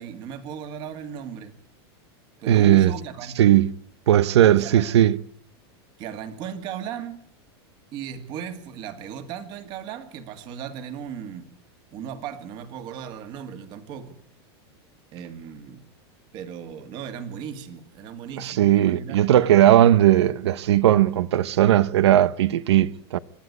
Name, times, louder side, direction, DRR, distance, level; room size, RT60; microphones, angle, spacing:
voice 1, 0.0-1.5 2.4-3.4 4.6-4.9 6.0-7.2 7.9-11.5 11.9-14.2 15.1-15.8 16.3-19.2, right 8 dB, 35° right, 2.3 m, -36 dB
voice 2, 2.5-2.9 3.4-3.7 4.1-5.2 18.4-23.2, right 12 dB, 85° right, 0.9 m, -17 dB
25.5 x 12.0 x 9.6 m
supercardioid pair, 170°, 14 cm